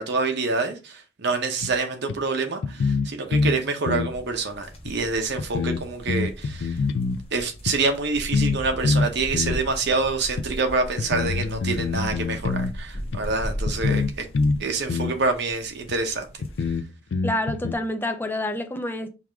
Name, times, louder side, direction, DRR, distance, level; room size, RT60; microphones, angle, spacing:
voice 1, 0.0-6.8 7.3-14.3 14.6-16.3, right 3 dB, 60° right, 0.8 m, -26 dB
sound 1, 1.6-1.7 2.1-2.2 2.6-3.6 3.9-4.1 4.9-5.0 5.4-7.2 7.7-7.8 8.3-8.6 8.8-9.6 10.4-10.5 11.0-12.7 13.1-13.2 13.7-14.6 14.9-15.2 15.9-16.0 16.4-17.7, left 4 dB, 70° left, 0.4 m, -25 dB
sound 2, 4.1-16.8, equal, 30° left, 0.8 m, -38 dB
voice 2, 17.2-19.1, left 1 dB, 10° left, 0.5 m, -28 dB
4.7 x 2.5 x 3.4 m
head